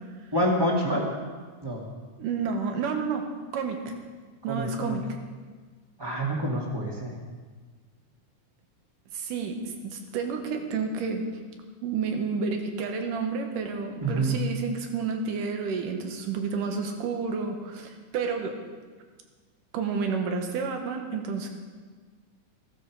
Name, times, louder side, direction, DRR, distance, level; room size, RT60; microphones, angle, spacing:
voice 1, 0.3-1.1 1.6-1.8 4.5-5.0 6.0-7.1 14.0-14.3, right 1 dB, 10° right, -2 dB, 1.5 m, -27 dB
voice 2, 2.2-3.9 4.4-5.1 9.1-11.3 11.8-18.6 19.7-21.5, right 5 dB, 85° right, 4 dB, 2.9 m, -30 dB
15.5 x 13.0 x 4.7 m, 1.5 s
omnidirectional pair, 3.7 m